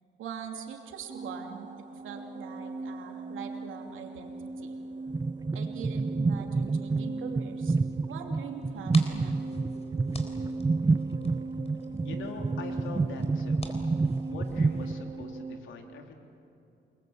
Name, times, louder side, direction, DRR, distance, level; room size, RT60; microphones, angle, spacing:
voice 1, 0.2-4.7 5.5-7.8 8.1-9.4, right 7 dB, 80° right, 3 dB, 2.9 m, -42 dB
sound 1, 1.1-15.6, right 3 dB, 40° right, 1.6 m, -40 dB
sound 2, 5.1-15.2, right 3 dB, 20° right, 0.5 m, -29 dB
sound 3, 8.6-14.9, left 2 dB, 30° left, 4.0 m, -48 dB
voice 2, 12.0-13.6 14.3-16.1, left 4 dB, 75° left, 3 dB, 3.4 m, -42 dB
29.5 x 21.5 x 8.0 m, 2.7 s
cardioid pair, 90°, 20 cm